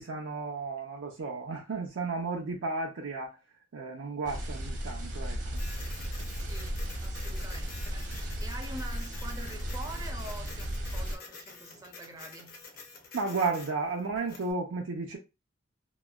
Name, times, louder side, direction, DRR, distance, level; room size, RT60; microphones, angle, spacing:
voice 1, 0.0-3.4 3.7-5.6 13.1-15.2, right 3 dB, 90° right, 0.5 m, -33 dB
sound 1, 4.3-11.2, equal, 65° right, 0.8 m, -35 dB
Printer, 5.5-14.5, left 4 dB, 50° left, 0.7 m, -49 dB
voice 2, 6.4-12.6, right 2 dB, 20° right, 0.4 m, -45 dB
2.9 x 2.1 x 2.3 m
head